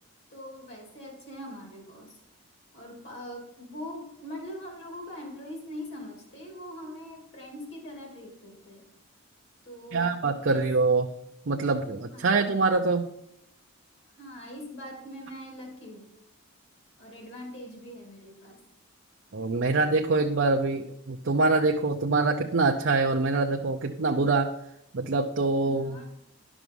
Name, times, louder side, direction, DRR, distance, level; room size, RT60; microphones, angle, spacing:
voice 1, 0.3-2.2 2.7-8.9 9.6-10.1 10.4-10.6 12.1-12.4 14.1-16.1 17.0-18.6 25.6-26.1, left 1 dB, 50° left, 0 dB, 2.8 m, -42 dB
voice 2, 9.9-11.1 11.5-13.1 19.3-24.5 24.9-26.0, right 3 dB, 55° right, 3 dB, 0.6 m, -25 dB
11.0 x 6.1 x 5.3 m, 0.77 s
head